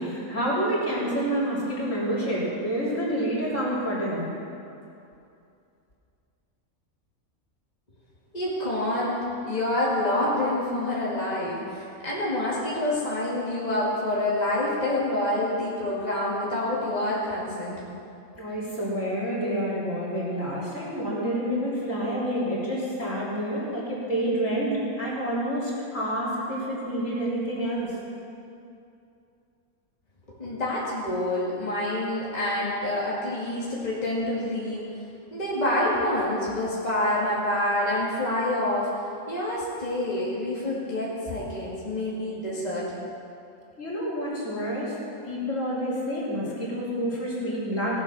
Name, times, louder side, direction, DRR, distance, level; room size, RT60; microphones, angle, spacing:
voice 1, 0.0-4.2 18.4-28.0 43.8-45.0 45.2-48.0, equal, 60° left, -7 dB, 3.7 m, -28 dB
voice 2, 8.3-9.2 9.5-17.8 30.3-34.9 35.3-38.9 39.3-42.9, left 1 dB, 30° left, -7 dB, 2.2 m, -27 dB
18.0 x 7.5 x 6.1 m, 2.6 s
omnidirectional pair, 1.5 m